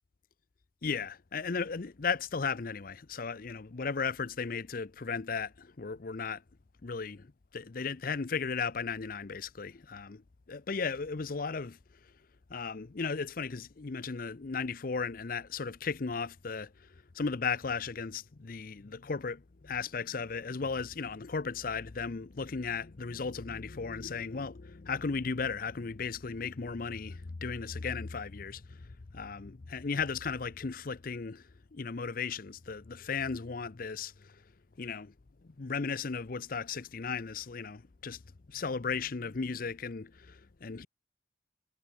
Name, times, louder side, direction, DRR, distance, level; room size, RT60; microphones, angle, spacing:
voice 1, 0.8-6.4 6.8-10.2 10.5-11.8 12.5-16.9 17.1-31.4 31.7-34.4 34.8-35.1 35.4-38.2 38.5-40.9, left 5 dB, 50° left, 0.6 m, -36 dB
head